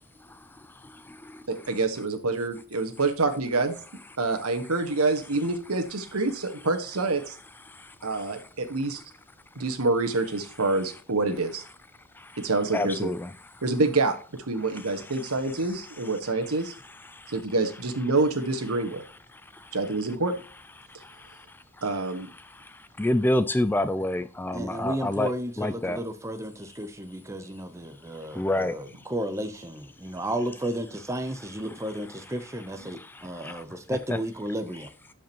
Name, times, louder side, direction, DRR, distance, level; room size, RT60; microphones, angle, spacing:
voice 1, 1.5-3.7 4.2-7.3 8.0-9.0 9.5-11.6 12.4-13.1 13.6-14.1 14.5-16.7 17.3-19.0 19.7-20.4 21.8-22.3 32.8-32.9, right 3 dB, 80° right, 1.5 m, -27 dB
voice 2, 12.7-13.3 23.0-25.3 25.6-26.0 28.4-28.7 33.4-33.6 34.1-34.2, left 1 dB, 10° left, 0.3 m, -26 dB
voice 3, 24.5-34.9, right 1 dB, 15° right, 0.7 m, -33 dB
12.5 x 5.2 x 2.9 m
head